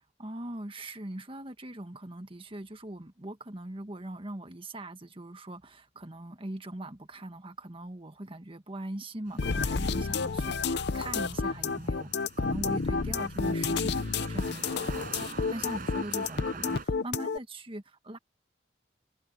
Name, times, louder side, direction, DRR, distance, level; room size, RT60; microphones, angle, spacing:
voice 1, 0.2-18.2, right 1 dB, 30° right, 1.6 m, -41 dB
sound 1, 9.3-16.9, right 4 dB, 50° right, 5.6 m, -46 dB
sound 2, 9.4-17.4, left 4 dB, 65° left, 0.7 m, -30 dB
head